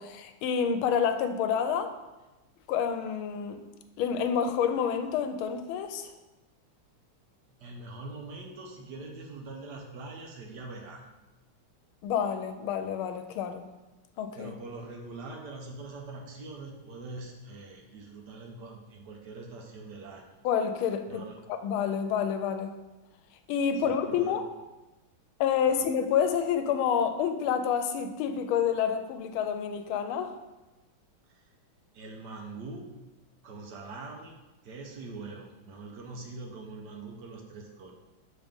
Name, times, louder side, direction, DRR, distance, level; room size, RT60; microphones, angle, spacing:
voice 1, 0.0-1.9 2.7-3.6 4.0-6.1 12.0-13.7 14.2-14.5 20.4-21.2 21.5-22.8 23.5-24.4 25.4-30.4, left 7 dB, 90° left, 8 dB, 1.4 m, -28 dB
voice 2, 7.5-11.0 14.3-20.3 21.1-21.4 23.7-24.3 25.7-25.8 31.3-31.5 31.9-32.9 33.4-34.4 34.6-37.9, right 3 dB, 65° right, 1 dB, 1.2 m, -43 dB
7.4 x 3.8 x 3.5 m, 1.1 s
omnidirectional pair, 2.2 m